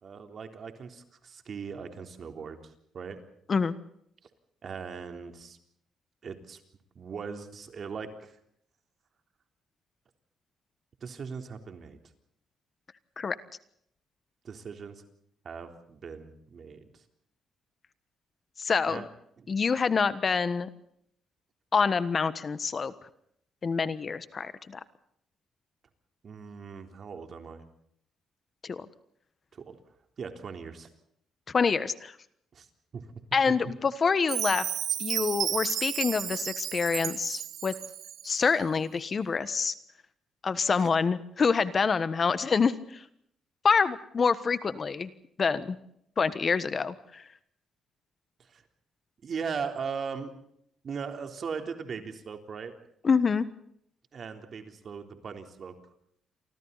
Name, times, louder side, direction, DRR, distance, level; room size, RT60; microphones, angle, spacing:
voice 1, 0.0-3.2 4.6-5.6 6.2-6.6 7.0-8.4 11.0-12.0 14.4-15.0 15.4-17.0 18.9-19.1 19.4-19.5 26.2-27.6 29.5-29.8 30.2-30.9 32.5-32.7 32.9-33.1 40.7-40.9 48.4-48.6 49.2-50.3 50.8-52.7 54.1-55.7, right 6 dB, 50° right, 6 dB, 3.7 m, -39 dB
voice 2, 18.6-19.1 19.5-20.7 21.7-22.9 23.6-24.8 28.6-28.9 31.5-32.1 33.3-34.7 35.0-37.7 38.2-39.7 40.4-43.0 43.6-45.1 45.4-45.8 46.2-47.2 53.0-53.4, left 5 dB, 40° left, 14 dB, 1.4 m, -26 dB
Chime, 34.3-38.4, right 10 dB, 70° right, 0.9 m, -33 dB
29.0 x 24.5 x 4.2 m, 0.71 s
cardioid pair, 90°, 0 cm